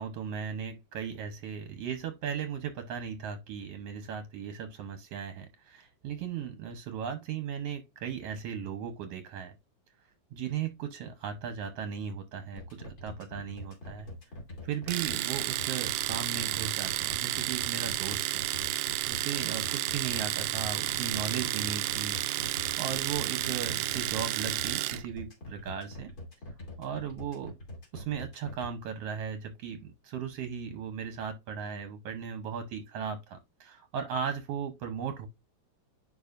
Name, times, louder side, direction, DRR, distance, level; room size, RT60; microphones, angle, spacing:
voice 1, 0.0-9.5 10.3-14.1 14.6-18.4 18.7-22.5 22.8-26.1 26.8-27.5 27.9-35.3, right 7 dB, 65° right, 1.7 m, -37 dB
sound 1, 12.6-28.7, left 1 dB, 30° left, 2.8 m, -44 dB
Domestic sounds home sounds, 14.9-25.1, right 15 dB, 85° right, 1.4 m, -31 dB
11.0 x 3.9 x 2.4 m
omnidirectional pair, 3.4 m